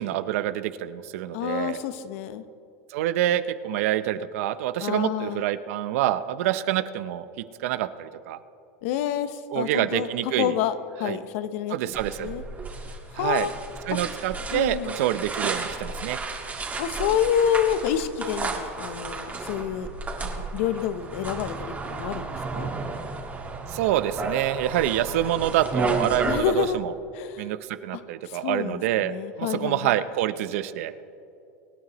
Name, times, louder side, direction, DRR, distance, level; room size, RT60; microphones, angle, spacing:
voice 1, 0.0-1.8 2.9-8.4 9.5-10.5 11.0-11.2 11.7-12.3 13.1-13.5 13.9-16.2 23.7-26.9 27.4-31.0, right 12 dB, 70° right, 13 dB, 0.6 m, -27 dB
voice 2, 1.3-2.4 4.8-5.4 8.8-11.9 12.2-12.4 13.1-13.5 14.5-15.0 16.8-19.9 20.2-22.7 26.3-26.8 27.1-27.5 27.9-30.0, left 9 dB, 70° left, 12 dB, 0.8 m, -28 dB
sound 1, 11.9-26.4, right 3 dB, 20° right, 1.7 m, -33 dB
24.0 x 9.5 x 3.1 m, 2.7 s
supercardioid pair, 110°, 8 cm